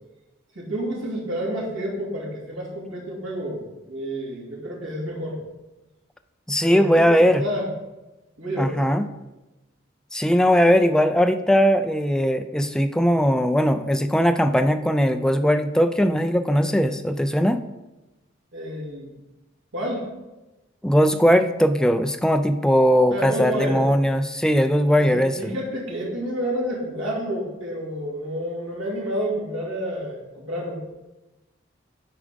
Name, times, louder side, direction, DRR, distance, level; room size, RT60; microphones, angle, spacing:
voice 1, 0.5-5.4 6.6-7.7 8.4-8.9 18.5-19.1 19.7-20.1 23.1-23.9 25.0-30.8, equal, 80° right, -5 dB, 2.6 m, -29 dB
voice 2, 6.5-7.4 8.6-9.1 10.1-17.6 20.8-25.6, equal, 5° left, 8 dB, 0.4 m, -19 dB
8.5 x 5.0 x 5.1 m, 1.0 s
head